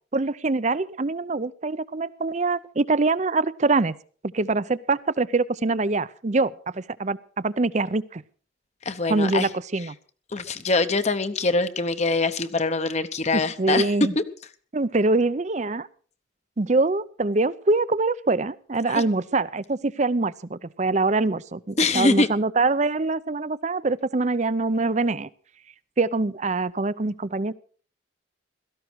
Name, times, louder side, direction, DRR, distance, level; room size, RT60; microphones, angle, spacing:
voice 1, 0.1-3.9 4.3-8.2 9.1-10.0 13.3-14.1 14.7-15.9 16.6-25.3 26.0-27.5, right 3 dB, 35° right, 18 dB, 0.6 m, -24 dB
voice 2, 8.8-9.5 10.3-13.9 14.2-14.3 18.9-19.0 21.8-22.3, left 3 dB, 35° left, 11 dB, 0.9 m, -23 dB
17.0 x 14.0 x 4.7 m, 0.43 s
head